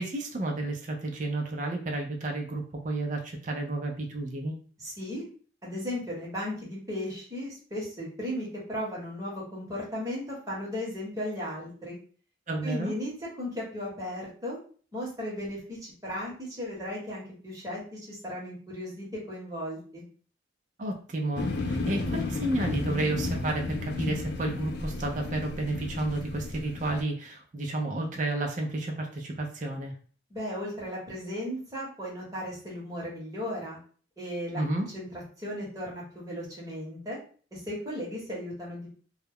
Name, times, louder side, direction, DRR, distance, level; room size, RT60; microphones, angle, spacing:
voice 1, 0.0-4.5 12.5-12.9 20.8-29.9 34.5-34.9, right 2 dB, 40° right, 1 dB, 0.4 m, -31 dB
voice 2, 4.8-5.3 5.6-12.0 12.6-14.6 14.9-20.0 30.3-33.8 34.2-37.2 37.5-38.9, left 1 dB, 15° right, -6 dB, 1.0 m, -36 dB
sound 1, 21.4-27.0, left 3 dB, 55° left, 0.3 m, -33 dB
2.3 x 2.0 x 3.4 m, 0.42 s
head